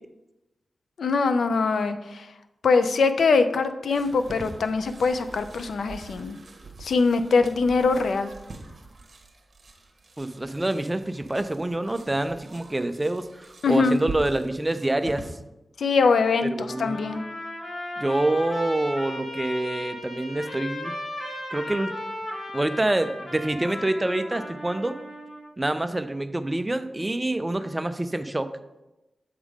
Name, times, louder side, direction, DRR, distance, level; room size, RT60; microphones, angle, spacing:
voice 1, 1.0-2.3 2.6-6.4 6.8-8.3 13.6-14.0 15.8-17.2, left 4 dB, 85° left, 9 dB, 0.4 m, -22 dB
sound 1, 3.9-15.3, right 3 dB, 55° right, 1.1 m, -44 dB
voice 2, 10.2-15.3 16.4-17.0 18.0-20.9 21.5-21.9 22.5-25.0 25.6-28.5, right 1 dB, 15° right, 10 dB, 0.4 m, -26 dB
Trumpet, 16.7-25.5, left 1 dB, 50° left, 1.5 m, -36 dB
7.2 x 3.6 x 4.7 m, 0.98 s
wide cardioid pair, 105°, 0 cm